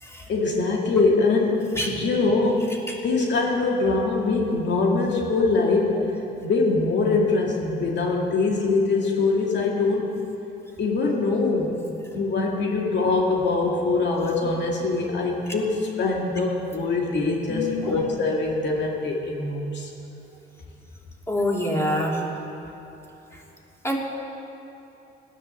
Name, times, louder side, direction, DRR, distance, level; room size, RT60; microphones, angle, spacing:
voice 1, 0.3-2.7 3.0-6.1 6.4-10.1 10.8-11.8 12.1-19.9, left 3 dB, 60° left, -1 dB, 2.3 m, -23 dB
voice 2, 17.5-18.0 21.3-22.2 23.8-24.0, left 1 dB, 15° left, -2 dB, 3.1 m, -26 dB
16.5 x 10.0 x 7.6 m, 2.9 s
cardioid pair, 90°, 20 cm